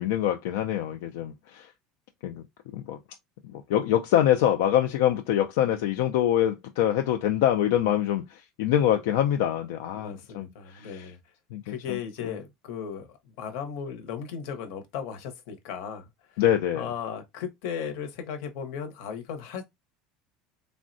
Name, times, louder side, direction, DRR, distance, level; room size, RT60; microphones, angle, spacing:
voice 1, 0.0-1.7 2.2-2.4 2.7-3.0 3.4-11.0 11.5-11.6 11.9-12.0 12.2-12.3 16.4-16.9, left 11 dB, 75° left, 0.4 m, -25 dB
voice 2, 9.9-11.2 11.6-16.4 16.7-19.6, left 7 dB, 55° left, 0.8 m, -36 dB
3.5 x 2.1 x 2.5 m
cardioid pair, 175°, 0 cm